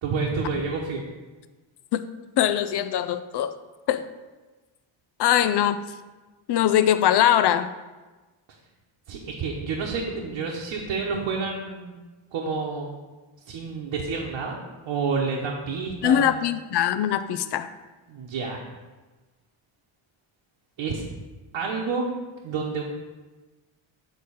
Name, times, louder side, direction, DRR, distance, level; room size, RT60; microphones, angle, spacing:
voice 1, 0.0-1.0 9.1-11.9 12.3-13.0 13.5-14.6 14.9-16.4 18.1-18.6 20.8-21.0 21.5-22.1 22.4-22.8, right 4 dB, 70° right, -3 dB, 1.1 m, -29 dB
voice 2, 2.4-3.5 3.9-4.0 5.2-5.8 6.5-7.7 16.0-17.7, left 10 dB, 55° left, 13 dB, 0.5 m, -22 dB
8.4 x 3.8 x 5.6 m, 1.2 s
cardioid pair, 115°, 49 cm